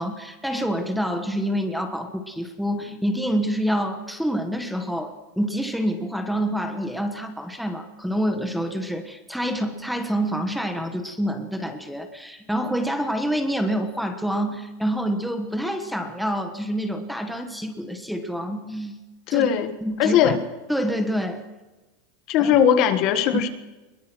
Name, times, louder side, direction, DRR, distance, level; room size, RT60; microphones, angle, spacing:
voice 1, 0.0-19.0 19.3-19.5 19.8-20.4 20.7-21.4 22.4-22.5 23.3-23.4, equal, ahead, 7 dB, 1.4 m, -27 dB
voice 2, 19.3-20.4 22.3-23.5, left 9 dB, 35° left, 9 dB, 1.5 m, -19 dB
22.5 x 21.5 x 6.2 m, 1.1 s
supercardioid pair, 175°, 0 cm